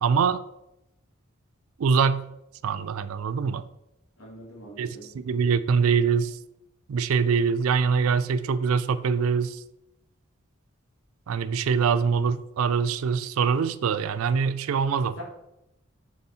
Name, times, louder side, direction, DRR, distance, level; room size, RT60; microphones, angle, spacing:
voice 1, 0.0-0.4 1.8-2.2 2.6-3.6 4.8-6.4 6.9-9.6 11.3-15.2, right 6 dB, 85° right, 0.4 m, -24 dB
voice 2, 4.2-5.1 15.2-15.3, equal, 80° left, 2.4 m, -43 dB
7.0 x 4.1 x 4.2 m
head